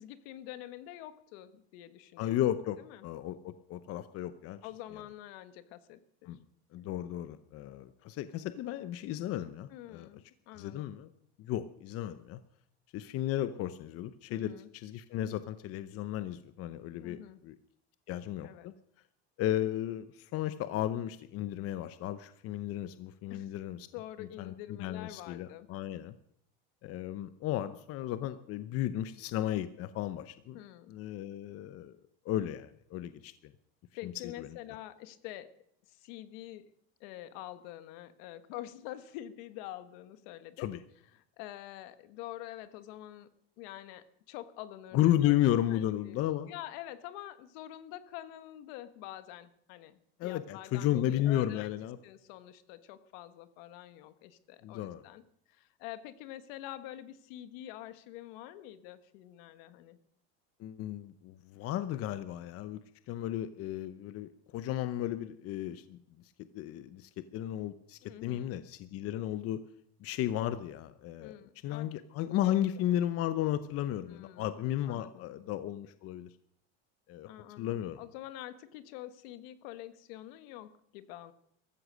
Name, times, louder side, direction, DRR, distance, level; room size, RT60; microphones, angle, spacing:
voice 1, 0.0-2.4 2.8-3.1 4.6-6.4 9.7-10.9 14.3-14.7 17.0-17.4 18.4-18.7 23.3-23.5 23.9-25.7 30.5-30.9 33.9-35.5 35.9-36.7 37.0-40.7 41.1-43.3 43.6-45.3 45.7-46.2 46.5-51.7 52.0-55.2 55.5-60.0 68.0-68.6 71.2-71.9 72.4-72.5 74.1-74.5 74.9-75.3 77.3-81.3, left 13 dB, 75° left, 13 dB, 1.4 m, -46 dB
voice 2, 2.2-4.6 6.3-6.4 6.7-10.1 10.6-11.1 11.4-12.4 12.9-17.2 17.4-17.5 18.1-18.7 19.4-23.8 24.4-26.1 26.8-30.6 30.9-32.0 32.2-33.5 34.0-34.1 34.4-34.5 40.6-40.8 44.9-46.5 50.2-52.0 54.6-55.0 60.6-66.0 66.5-69.6 70.0-71.3 71.6-76.3 77.1-77.3 77.6-78.0, left 12 dB, 50° left, 13 dB, 0.8 m, -34 dB
15.0 x 13.5 x 6.3 m, 0.68 s
supercardioid pair, 125°, 30 cm